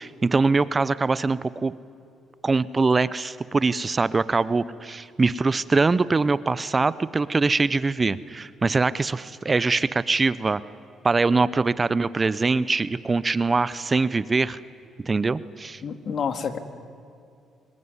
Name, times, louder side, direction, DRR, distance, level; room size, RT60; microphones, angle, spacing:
voice 1, 0.0-1.7 2.4-10.6 11.0-14.6 15.0-15.8, right 3 dB, 30° right, 17 dB, 0.8 m, -23 dB
voice 2, 15.8-16.6, left 6 dB, 55° left, 9 dB, 2.2 m, -28 dB
25.0 x 22.0 x 9.8 m, 2.5 s
cardioid pair, 90°, 0 cm